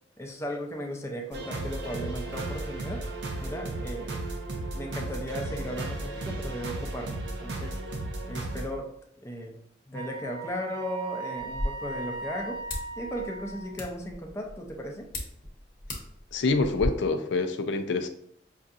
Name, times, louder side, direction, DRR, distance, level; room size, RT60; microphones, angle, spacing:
voice 1, 0.2-3.1 3.4-4.2 4.7-7.8 8.3-8.9 9.2-9.6 9.9-12.6 13.0-15.1, equal, 15° left, 1 dB, 0.5 m, -36 dB
sound 1, 1.3-8.7, right 2 dB, 75° right, 0.6 m, -35 dB
Wind instrument woodwind instrument, 9.9-13.8, right 3 dB, 25° right, 0.7 m, -38 dB
sound 2, 11.4-16.9, left 1 dB, 50° left, 0.9 m, -39 dB
voice 2, 16.3-18.1, left 3 dB, 80° left, 7 dB, 0.4 m, -26 dB
5.6 x 2.6 x 2.5 m, 0.70 s
head